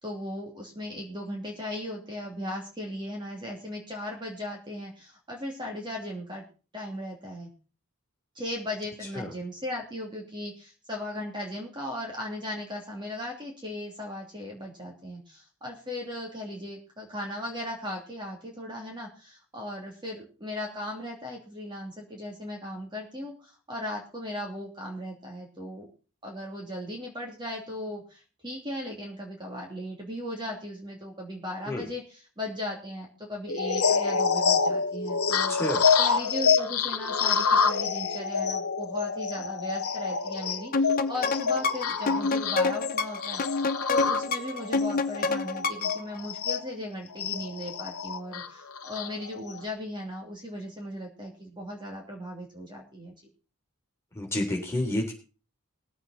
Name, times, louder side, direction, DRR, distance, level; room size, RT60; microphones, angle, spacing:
voice 1, 0.0-6.4 6.7-7.5 8.3-25.9 26.2-53.1, left 1 dB, 20° right, 0 dB, 2.9 m, -37 dB
sound 1, 33.5-46.6 47.2-49.6, left 5 dB, 80° left, 1.1 m, -27 dB
voice 2, 35.5-35.8 54.2-55.1, left 1 dB, 10° left, 0 dB, 3.6 m, -29 dB
sound 2, 40.7-46.0, left 3 dB, 40° left, 0.8 m, -28 dB
20.0 x 8.0 x 4.2 m, 0.35 s
head